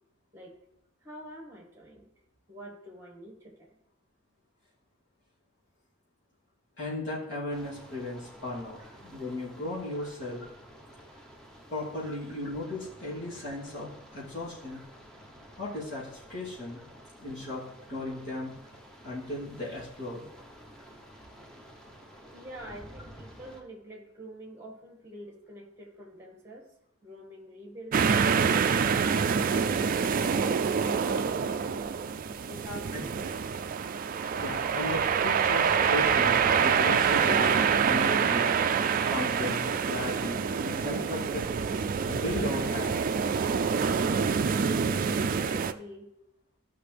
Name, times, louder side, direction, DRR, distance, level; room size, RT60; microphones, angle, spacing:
voice 1, 1.0-2.1 2.5-3.8 8.8-8.9 10.0-10.1 12.0-12.1 14.7-14.8 20.8-20.9 22.3-26.7 27.0-30.8 32.4-33.4 44.9-46.1, equal, 10° right, 1 dB, 1.8 m, -47 dB
voice 2, 6.8-10.5 11.7-14.8 15.6-16.8 17.2-18.5 19.0-20.3 34.4-38.5 39.1-41.4 42.1-43.0, left 2 dB, 55° left, -8 dB, 2.9 m, -36 dB
sound 1, 7.5-23.6, equal, 5° left, 0.9 m, -51 dB
sound 2, 27.9-45.7, right 6 dB, 40° right, 0.3 m, -26 dB
14.5 x 5.8 x 3.3 m, 0.82 s
head